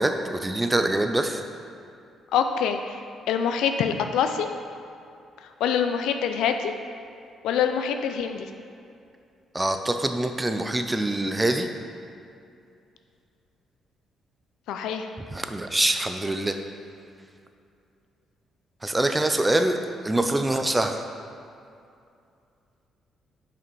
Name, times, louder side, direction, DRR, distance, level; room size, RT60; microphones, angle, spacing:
voice 1, 0.0-1.4 9.5-11.7 15.3-16.5 18.8-19.8 20.0-21.0, right 1 dB, 15° right, 6 dB, 0.5 m, -24 dB
voice 2, 2.3-3.0 3.3-4.5 5.6-6.7 7.4-8.5 14.7-15.1, left 7 dB, 90° left, 7 dB, 0.4 m, -25 dB
5.8 x 5.0 x 4.6 m, 2.5 s
cardioid pair, 90°, 0 cm